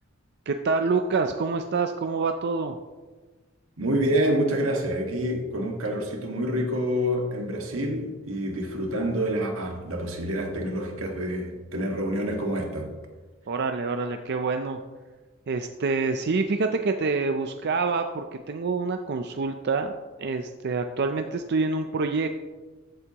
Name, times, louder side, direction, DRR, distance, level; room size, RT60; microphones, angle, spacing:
voice 1, 0.5-2.7 13.5-14.8 15.5-19.9 20.2-22.3, right 4 dB, 55° right, 6 dB, 0.5 m, -26 dB
voice 2, 3.8-12.9, equal, 85° right, 2 dB, 1.8 m, -27 dB
14.5 x 8.1 x 3.0 m, 1.3 s
head